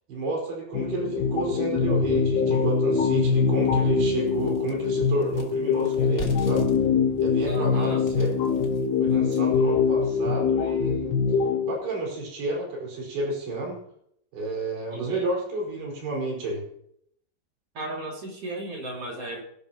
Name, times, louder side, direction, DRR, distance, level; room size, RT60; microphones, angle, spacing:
voice 1, 0.1-6.7 7.2-8.3 9.0-11.1 11.6-13.8 14.3-16.6, right 2 dB, 80° right, -2 dB, 6.8 m, -31 dB
sound 1, 0.7-11.7, left 5 dB, 80° left, 3.2 m, -23 dB
sound 2, 2.5-2.6 3.1-3.2 3.6-9.7, left 1 dB, 30° left, 1.8 m, -42 dB
voice 2, 7.5-8.0 14.9-15.2 17.7-19.4, right 1 dB, 40° right, -1 dB, 3.2 m, -35 dB
26.5 x 11.5 x 3.0 m, 0.70 s
omnidirectional pair, 4.6 m